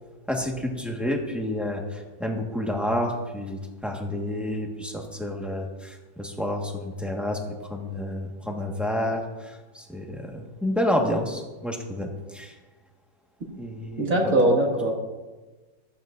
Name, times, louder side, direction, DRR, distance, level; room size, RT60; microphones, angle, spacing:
voice 1, 0.3-12.5 13.6-14.3, left 1 dB, ahead, 0 dB, 1.2 m, -29 dB
voice 2, 14.0-14.9, right 1 dB, 45° right, -2 dB, 2.6 m, -21 dB
15.5 x 12.5 x 2.6 m, 1.2 s
omnidirectional pair, 2.0 m